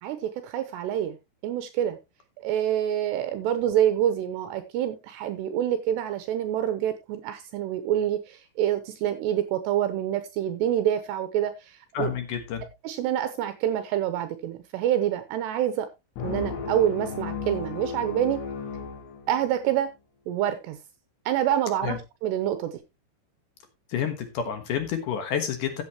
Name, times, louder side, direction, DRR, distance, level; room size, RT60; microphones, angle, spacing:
voice 1, 0.0-1.2 1.4-2.0 2.4-12.1 12.8-15.9 16.2-18.4 19.3-19.9 20.3-20.8 21.3-22.8, right 11 dB, 80° right, 10 dB, 2.8 m, -27 dB
voice 2, 11.9-12.6 21.8-22.0 23.9-25.8, left 8 dB, 65° left, 8 dB, 2.2 m, -29 dB
sound 1, 16.2-19.7, left 5 dB, 90° left, 4.5 m, -35 dB
14.5 x 8.2 x 2.9 m, 0.24 s
omnidirectional pair, 5.3 m